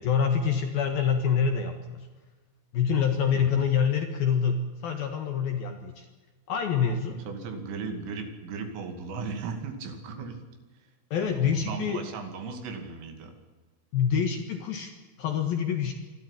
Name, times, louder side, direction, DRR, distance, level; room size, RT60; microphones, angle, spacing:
voice 1, 0.0-2.1 2.7-6.1 6.5-7.2 11.1-12.0 13.9-14.9 15.2-15.9, left 7 dB, 60° left, 5 dB, 2.8 m, -26 dB
voice 2, 3.3-3.7 7.2-10.5 10.7-10.9 11.2-13.3, right 4 dB, 75° right, 6 dB, 5.0 m, -37 dB
25.5 x 13.0 x 9.9 m, 1.3 s
omnidirectional pair, 6.0 m